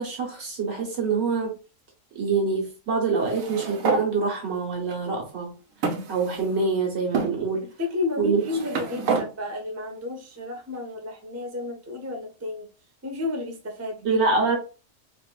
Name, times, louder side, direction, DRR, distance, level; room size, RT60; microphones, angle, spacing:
voice 1, 0.0-1.5 2.1-5.6 6.1-7.7 8.2-8.4 14.0-14.6, right 4 dB, 55° right, 1.5 m, -25 dB
sound 1, 3.2-4.1 4.9-5.0 5.8-6.7 7.1-7.3 8.2-9.3, right 4 dB, 85° right, 1.1 m, -28 dB
voice 2, 7.8-12.7 13.0-14.2, left 2 dB, 20° right, 0.4 m, -32 dB
4.2 x 2.5 x 2.2 m
omnidirectional pair, 1.4 m